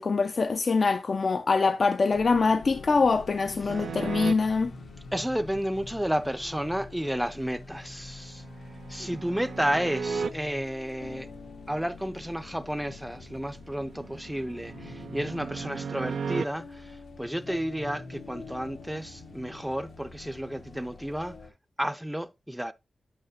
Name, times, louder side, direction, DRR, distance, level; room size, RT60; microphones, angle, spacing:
voice 1, 0.0-4.7, left 4 dB, 55° left, 0.5 m, -24 dB
sound 1, 2.1-21.5, left 3 dB, 85° left, 1.4 m, -45 dB
sound 2, 3.7-4.3 7.7-10.3 13.4-16.4, right 6 dB, 85° right, 0.4 m, -36 dB
voice 2, 5.1-8.4 8.9-11.3 11.7-21.4 21.8-22.7, equal, 5° right, 0.5 m, -32 dB
9.0 x 5.8 x 2.7 m
cardioid pair, 70°, 0 cm